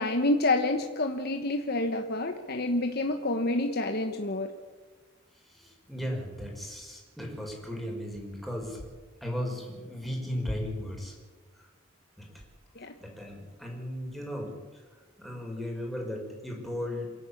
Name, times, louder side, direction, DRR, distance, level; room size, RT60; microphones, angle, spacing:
voice 1, 0.0-4.5 12.7-12.9, left 2 dB, 55° left, 4 dB, 1.3 m, -28 dB
voice 2, 5.5-8.8 9.2-11.1 13.0-14.5 15.2-17.1, equal, ahead, -1 dB, 5.2 m, -36 dB
28.0 x 11.5 x 8.5 m, 1.4 s
head